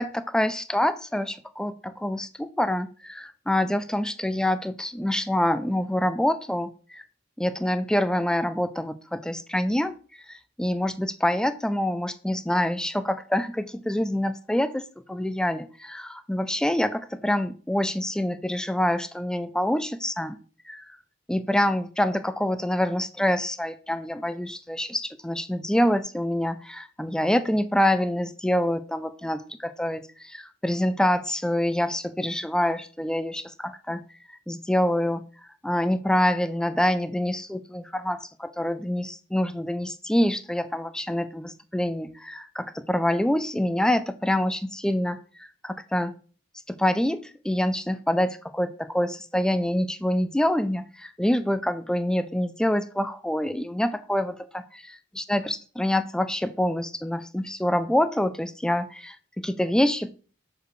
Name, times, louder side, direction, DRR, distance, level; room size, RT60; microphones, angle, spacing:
voice 1, 0.0-7.0 7.4-10.0 10.3-20.4 20.7-20.8 21.3-34.0 34.5-35.2 35.6-46.1 46.7-54.6 55.2-60.1, left 1 dB, 5° left, 0.3 m, -26 dB
6.8 x 4.8 x 3.1 m
head